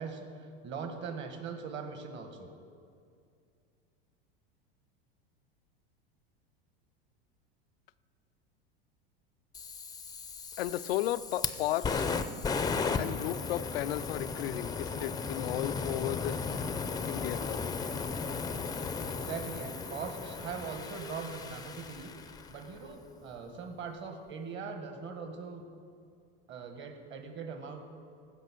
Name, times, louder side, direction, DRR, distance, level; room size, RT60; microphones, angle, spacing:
voice 1, 0.0-2.5 19.1-22.1 22.5-25.6 26.5-27.9, right 5 dB, 40° right, 6 dB, 1.5 m, -41 dB
Fire, 9.5-22.7, left 5 dB, 15° left, 0.5 m, -35 dB
voice 2, 10.6-12.1 13.0-16.5 17.1-17.6, left 14 dB, 80° left, 15 dB, 0.5 m, -34 dB
15.0 x 5.5 x 6.2 m, 2.3 s
hypercardioid pair, 105°, 29 cm